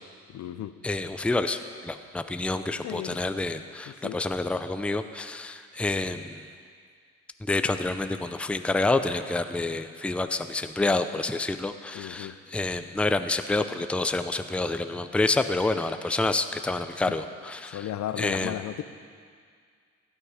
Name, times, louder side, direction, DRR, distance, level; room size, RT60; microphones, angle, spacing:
voice 1, 0.3-0.7 2.8-3.2 3.9-4.2 11.9-12.3 17.7-18.8, left 12 dB, 70° left, 12 dB, 0.7 m, -34 dB
voice 2, 0.8-6.4 7.5-17.9 18.2-18.6, left 2 dB, 5° left, 9 dB, 0.5 m, -28 dB
15.5 x 9.8 x 4.9 m, 2.1 s
cardioid pair, 90°, 30 cm